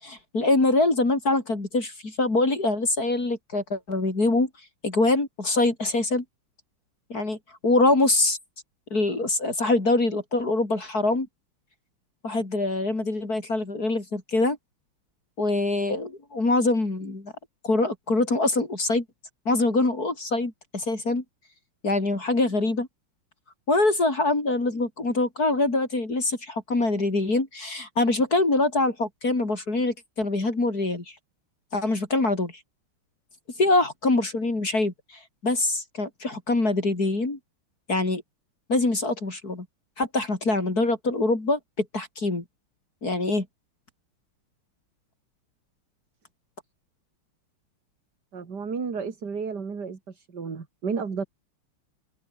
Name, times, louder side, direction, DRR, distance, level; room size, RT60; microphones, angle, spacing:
voice 1, 0.0-4.5 4.8-6.2 7.1-7.4 7.6-8.4 8.9-11.3 12.2-14.6 15.4-17.3 17.6-19.0 19.4-21.2 21.8-22.9 23.7-31.0 31.7-32.5 33.6-34.9 35.4-37.4 37.9-38.2 38.7-39.7 40.0-42.4 43.0-43.5, left 2 dB, 45° left, 4.9 m, -24 dB
voice 2, 48.3-51.2, right 5 dB, 50° right, 3.0 m, -32 dB
open air
omnidirectional pair, 2.3 m